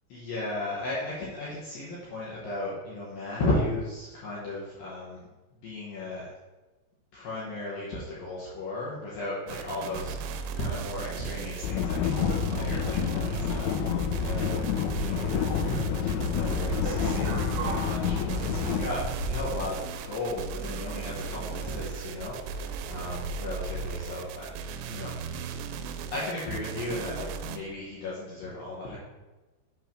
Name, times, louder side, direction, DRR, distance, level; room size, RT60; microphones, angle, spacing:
voice 1, 0.1-5.2 5.6-6.3 7.1-19.0 19.3-24.5 24.8-25.1 25.7-29.0, left 2 dB, 70° left, -7 dB, 2.3 m, -35 dB
sound 1, 9.5-27.6, right 6 dB, 85° right, 3.1 m, -37 dB
sound 2, 11.6-18.8, left 6 dB, 85° left, 3.0 m, -28 dB
sound 3, 16.6-24.1, right 1 dB, 70° right, 2.9 m, -38 dB
8.1 x 3.4 x 5.9 m, 1.1 s
omnidirectional pair, 5.7 m